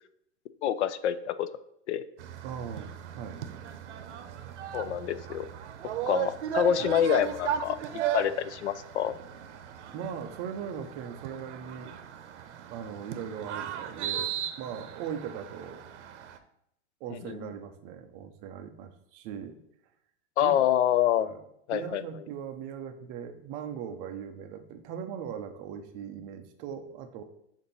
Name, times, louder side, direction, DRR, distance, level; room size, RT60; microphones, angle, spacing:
voice 1, 0.6-1.5 1.9-2.0 4.7-5.5 6.1-9.2 17.1-17.4 20.4-21.3 21.7-22.0, left 10 dB, 75° left, 14 dB, 0.6 m, -27 dB
sound 1, 2.2-16.4, right 9 dB, 80° right, 0.7 m, -36 dB
voice 2, 2.4-3.4 6.8-6.9 9.9-11.9 12.7-15.8 17.0-19.6 20.4-20.6 21.2-21.4 21.7-27.2, right 8 dB, 25° right, 7 dB, 0.4 m, -39 dB
6.8 x 2.6 x 5.3 m, 0.75 s
supercardioid pair, 145°, 35 cm